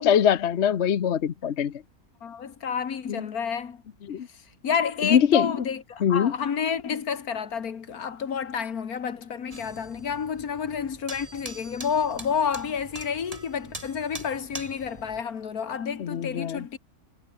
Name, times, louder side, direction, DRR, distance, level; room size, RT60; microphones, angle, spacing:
voice 1, 0.0-1.7 3.1-3.2 4.1-4.3 5.1-5.5 6.0-6.3 16.0-16.6, left 8 dB, 50° left, 1.1 m, -22 dB
voice 2, 2.2-3.8 4.6-16.8, left 7 dB, 75° left, 2.0 m, -30 dB
sound 1, 9.5-15.2, right 2 dB, 25° right, 2.9 m, -43 dB
omnidirectional pair, 1.6 m